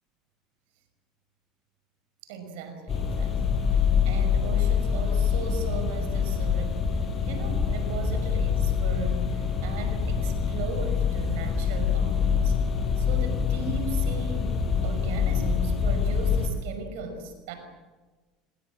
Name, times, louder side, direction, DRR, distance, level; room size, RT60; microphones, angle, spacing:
voice 1, 2.2-6.9 7.2-12.6 13.0-17.5, right 3 dB, 65° right, 7 dB, 5.7 m, -37 dB
sound 1, 2.9-16.5, left 6 dB, 35° left, 6.3 m, -25 dB
29.0 x 20.0 x 7.6 m, 1.3 s
hypercardioid pair, 70°, 0 cm